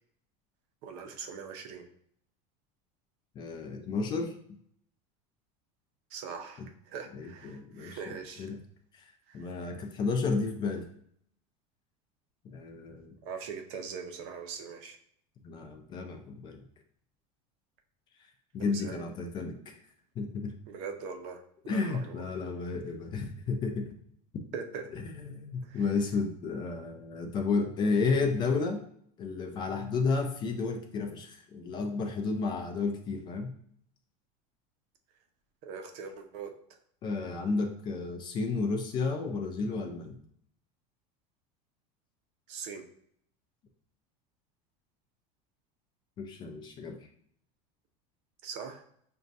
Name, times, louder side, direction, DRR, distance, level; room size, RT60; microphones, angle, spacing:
voice 1, 0.8-1.9 6.1-8.5 9.3-9.5 13.2-15.0 18.6-19.1 20.7-22.2 24.5-24.8 25.6-25.8 35.6-36.5 42.5-42.8 48.4-48.8, right 6 dB, 50° right, 5 dB, 0.6 m, -41 dB
voice 2, 3.4-4.3 7.1-8.6 8.9-9.0 9.3-10.8 12.4-13.1 15.4-16.6 18.5-19.8 20.2-20.5 21.7-23.9 24.3-24.4 25.2-28.8 29.2-33.5 37.0-40.2 46.2-47.0, left 4 dB, 25° left, 4 dB, 0.4 m, -32 dB
5.9 x 2.2 x 2.6 m, 0.66 s
supercardioid pair, 165°, 17 cm